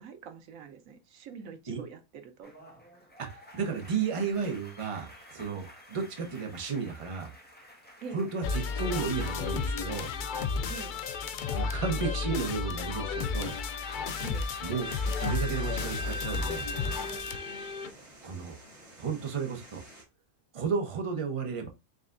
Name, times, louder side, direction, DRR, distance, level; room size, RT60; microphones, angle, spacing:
voice 1, 0.0-2.5 8.0-8.2 10.7-11.0 14.2-14.5, right 6 dB, 85° right, 1.1 m, -45 dB
sound 1, 2.4-11.2 11.5-17.2, equal, 10° left, 1.0 m, -51 dB
voice 2, 3.2-7.3 8.1-10.1 11.5-13.6 14.6-14.9 15.2-16.7 18.2-18.5 19.0-19.8 20.5-21.7, right 5 dB, 30° right, 0.8 m, -33 dB
sound 2, 8.4-17.9, left 4 dB, 65° left, 0.4 m, -32 dB
sound 3, 14.8-20.0, right 1 dB, 55° right, 2.5 m, -50 dB
5.0 x 3.3 x 2.5 m
omnidirectional pair, 1.4 m